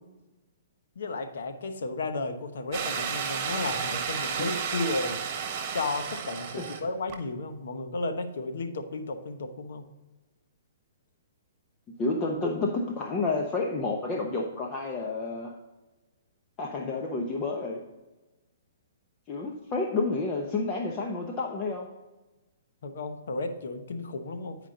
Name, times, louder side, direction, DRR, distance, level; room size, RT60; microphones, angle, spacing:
voice 1, 1.0-5.2 5.7-9.8 22.8-24.6, left 3 dB, 70° left, 7 dB, 1.1 m, -33 dB
sound 1, 2.7-6.8 7.1-7.2, right 6 dB, 40° right, 1.3 m, -32 dB
voice 2, 12.0-15.6 16.6-17.8 19.3-21.9, left 3 dB, 25° left, 1 dB, 0.9 m, -30 dB
9.9 x 5.1 x 3.8 m, 1.1 s
hypercardioid pair, 140°, 0 cm